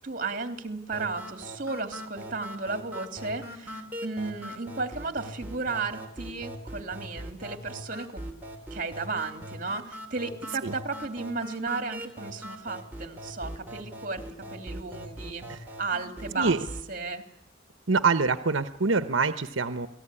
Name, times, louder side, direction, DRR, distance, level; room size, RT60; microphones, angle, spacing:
voice 1, 0.0-8.2 8.7-14.2 14.5-15.4 15.8-16.6 16.9-17.2, right 3 dB, 45° right, 7 dB, 3.1 m, -34 dB
sound 1, 0.9-16.9, equal, 10° right, 3.5 m, -41 dB
voice 2, 17.9-19.9, right 4 dB, 75° right, 10 dB, 1.1 m, -25 dB
29.0 x 19.0 x 9.9 m, 0.75 s
head